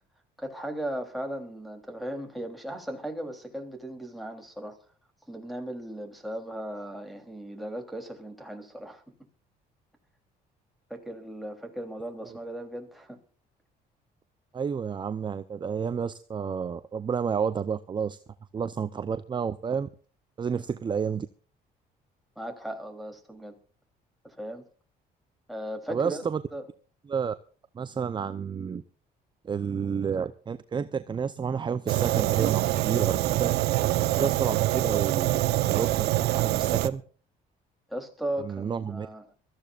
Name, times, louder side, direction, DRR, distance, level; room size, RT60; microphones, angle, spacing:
voice 1, 0.4-4.8 5.3-9.0 10.9-13.2 22.4-23.6 24.2-24.7 25.5-26.2 26.5-26.6 37.9-39.2, right 1 dB, ahead, 2 dB, 3.3 m, -37 dB
voice 2, 14.5-18.2 18.5-19.9 20.4-21.3 25.9-26.4 27.1-27.3 27.7-28.8 29.4-33.5 34.0-37.0 38.4-39.1, right 6 dB, 25° right, 11 dB, 0.7 m, -30 dB
Fire, 31.9-36.9, right 16 dB, 75° right, 0.8 m, -25 dB
23.5 x 14.0 x 2.5 m, 0.40 s
cardioid pair, 110°, 17 cm